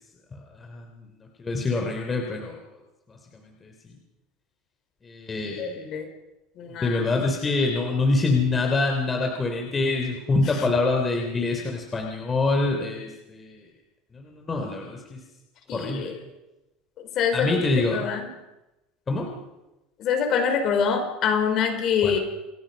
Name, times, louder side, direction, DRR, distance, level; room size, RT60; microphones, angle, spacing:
voice 1, 0.3-0.8 1.4-2.6 3.6-3.7 5.0-5.8 6.8-13.6 14.1-15.2 15.7-16.1 17.3-18.0 19.1-19.3 22.0-22.2, left 3 dB, 20° left, 2 dB, 3.4 m, -25 dB
voice 2, 5.4-6.0 6.6-7.0 15.7-16.2 17.0-17.6 17.9-18.3 20.0-22.2, left 7 dB, 45° left, 5 dB, 4.7 m, -25 dB
28.5 x 21.0 x 5.4 m, 0.99 s
cardioid pair, 150°, 0 cm